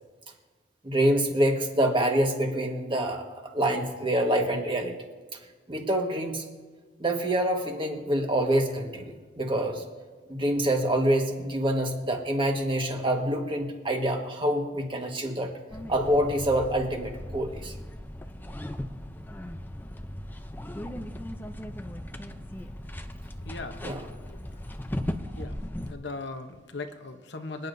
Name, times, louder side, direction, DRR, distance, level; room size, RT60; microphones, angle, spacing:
voice 1, 0.8-3.2 3.5-4.9 5.7-6.4 7.0-9.8 10.3-15.5 15.9-17.7 23.8-24.0, right 1 dB, 25° right, 2 dB, 1.5 m, -26 dB
sound 1, 15.7-25.9, left 1 dB, 10° left, 0.5 m, -37 dB
voice 2, 23.4-24.4 25.3-25.6 25.8-27.7, left 3 dB, 70° left, 6 dB, 0.9 m, -39 dB
26.5 x 9.4 x 2.7 m, 1.4 s
head